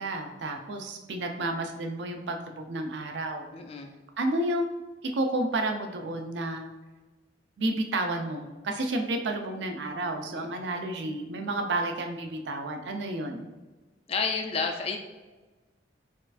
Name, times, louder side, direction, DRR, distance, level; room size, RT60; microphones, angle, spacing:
voice 1, 0.0-3.5 4.2-4.7 5.0-6.7 7.6-13.5, right 1 dB, 70° right, 4 dB, 0.5 m, -31 dB
voice 2, 3.5-3.9 10.3-10.6 14.1-15.0, left 4 dB, 35° left, 3 dB, 0.4 m, -31 dB
4.4 x 2.4 x 2.4 m, 1.2 s
head